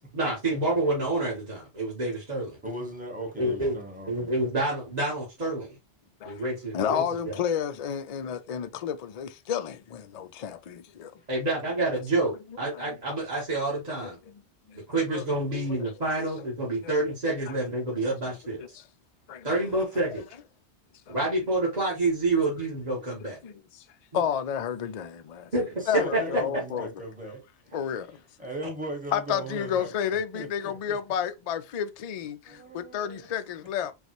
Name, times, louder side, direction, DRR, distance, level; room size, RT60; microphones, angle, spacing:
voice 1, 0.1-2.6 3.4-3.8 4.1-5.8 6.2-7.4 11.3-14.2 14.7-18.6 19.4-20.2 21.1-23.4 24.1-24.2 25.5-26.4, right 2 dB, 35° right, 1.5 m, -28 dB
voice 2, 2.6-4.3 25.8-27.8 28.4-31.0 32.5-33.4, right 1 dB, 5° right, 1.2 m, -38 dB
voice 3, 6.7-11.1 12.7-12.9 14.3-14.4 14.7-14.8 15.1-15.2 15.5-15.9 16.8-16.9 18.6-18.8 19.3-19.5 20.1-20.2 21.1-21.2 23.4-23.8 24.1-25.5 25.9-26.9 27.7-28.2 29.1-33.9, left 8 dB, 60° left, 0.4 m, -31 dB
5.2 x 2.4 x 3.0 m
omnidirectional pair, 1.2 m